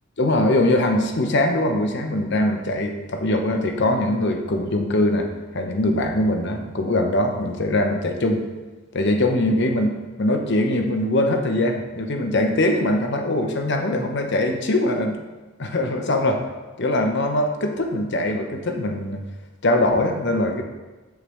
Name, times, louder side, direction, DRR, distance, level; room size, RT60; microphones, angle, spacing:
voice 1, 0.2-5.3 5.5-8.4 8.9-15.2 15.6-16.4 16.8-19.2 19.6-20.6, left 1 dB, 60° left, 4 dB, 0.9 m, -22 dB
8.2 x 8.0 x 3.2 m, 1.2 s
head